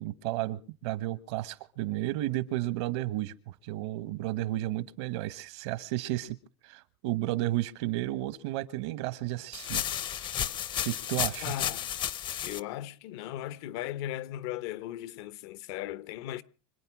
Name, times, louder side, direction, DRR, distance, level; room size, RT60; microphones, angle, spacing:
voice 1, 0.0-6.4 6.6-9.8 10.8-11.5, right 16 dB, 70° right, 1.2 m, -33 dB
sound 1, 9.5-12.6, left 10 dB, 35° left, 0.7 m, -32 dB
voice 2, 11.4-11.9 12.4-16.4, left 13 dB, 70° left, 0.9 m, -37 dB
25.5 x 9.2 x 6.1 m
supercardioid pair, 135°, 14 cm